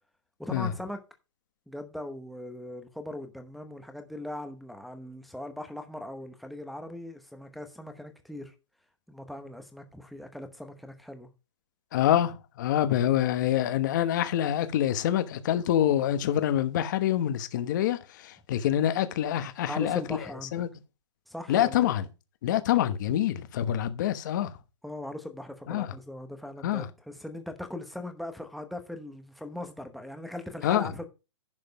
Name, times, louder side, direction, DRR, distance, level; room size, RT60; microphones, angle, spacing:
voice 1, 0.4-1.0 1.7-8.5 9.1-11.3 19.7-20.6 21.3-21.9 24.8-31.0, left 1 dB, ahead, 0.9 m, -40 dB
voice 2, 11.9-20.2 20.5-20.7 21.5-22.0 22.4-24.5 25.7-25.9 26.6-26.9 30.6-30.9, left 11 dB, 40° left, 1.1 m, -26 dB
11.0 x 5.2 x 5.2 m
hypercardioid pair, 160°, 15 cm